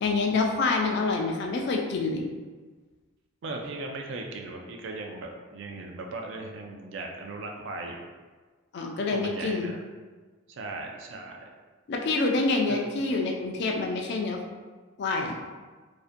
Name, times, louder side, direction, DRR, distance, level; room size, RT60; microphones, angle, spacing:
voice 1, 0.0-2.3 8.7-9.7 11.9-14.4 15.0-15.3, left 3 dB, 50° left, 2 dB, 0.3 m, -27 dB
voice 2, 3.4-8.1 9.1-9.8 10.5-11.4 12.7-12.9, right 2 dB, 60° right, 2 dB, 0.3 m, -37 dB
2.5 x 2.1 x 2.5 m, 1.4 s
head